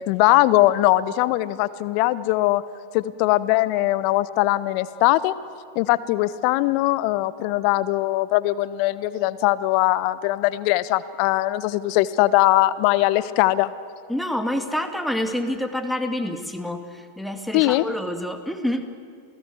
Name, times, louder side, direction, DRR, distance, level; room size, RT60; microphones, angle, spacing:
voice 1, 0.1-2.6 2.9-5.3 5.7-13.7 17.5-17.8, left 17 dB, 45° left, 16 dB, 1.0 m, -20 dB
voice 2, 14.1-18.9, left 1 dB, ahead, 6 dB, 2.3 m, -27 dB
28.0 x 18.0 x 9.5 m, 2.2 s
figure-of-eight pair, 90°, 0 cm